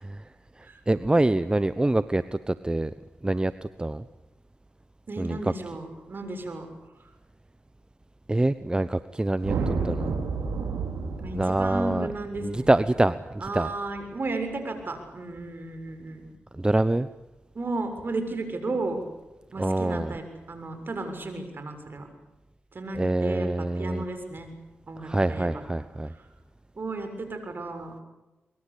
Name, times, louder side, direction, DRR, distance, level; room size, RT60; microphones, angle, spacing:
voice 1, 0.6-2.9 3.2-4.0 5.2-5.4 8.3-10.1 11.3-12.1 12.4-13.7 16.5-17.1 19.6-20.1 22.9-24.0 25.0-26.1, right 2 dB, 20° right, 14 dB, 1.0 m, -25 dB
voice 2, 5.1-6.7 11.2-12.7 13.4-16.3 17.5-19.0 19.5-22.1 22.7-24.5 24.9-25.5 26.7-27.9, right 2 dB, 50° right, 7 dB, 6.8 m, -34 dB
sound 1, 9.4-13.8, right 4 dB, 85° right, 4.4 m, -31 dB
23.5 x 23.5 x 8.6 m, 1.0 s
supercardioid pair, 45°, 4 cm